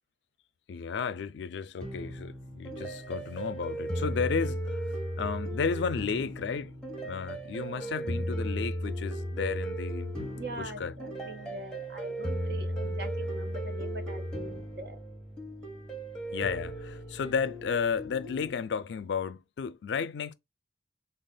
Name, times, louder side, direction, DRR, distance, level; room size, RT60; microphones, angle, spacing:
voice 1, 0.7-6.7 7.0-10.9 12.8-13.0 16.3-20.3, left 6 dB, 85° left, 0.4 m, -33 dB
sound 1, 1.8-18.5, equal, 5° left, 0.9 m, -36 dB
voice 2, 7.6-7.9 10.4-15.0, right 1 dB, 60° right, 0.8 m, -43 dB
3.3 x 2.4 x 3.7 m
head